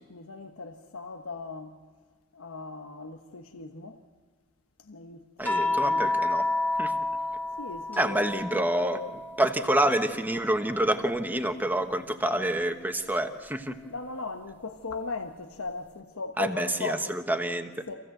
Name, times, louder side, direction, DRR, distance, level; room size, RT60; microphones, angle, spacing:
voice 1, 0.1-1.8 2.3-4.0 4.8-6.1 7.6-8.3 13.9-17.2 17.9-18.0, left 3 dB, 90° left, 1.1 m, -38 dB
sound 1, 5.4-9.9 10.3-11.9 13.4-13.6, left 2 dB, 10° left, 1.8 m, -31 dB
voice 2, 5.4-6.5 6.8-6.9 8.0-9.0 9.4-13.8 16.4-17.8, right 1 dB, 10° right, 1.2 m, -27 dB
26.5 x 16.0 x 7.8 m
head